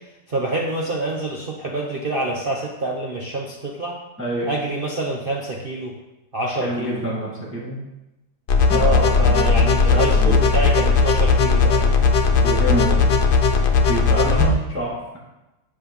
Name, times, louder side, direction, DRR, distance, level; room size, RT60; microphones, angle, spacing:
voice 1, 0.3-4.0 4.5-5.9 6.3-7.0 8.7-12.0 14.1-14.5, right 2 dB, 40° right, -2 dB, 0.9 m, -26 dB
voice 2, 4.2-4.5 6.6-7.8 8.7-10.4 12.4-13.2 13.9-15.0, right 1 dB, 5° right, -6 dB, 2.2 m, -26 dB
sound 1, 8.5-14.5, left 4 dB, 65° left, 1.5 m, -17 dB
9.3 x 6.4 x 5.5 m, 0.98 s
omnidirectional pair, 1.9 m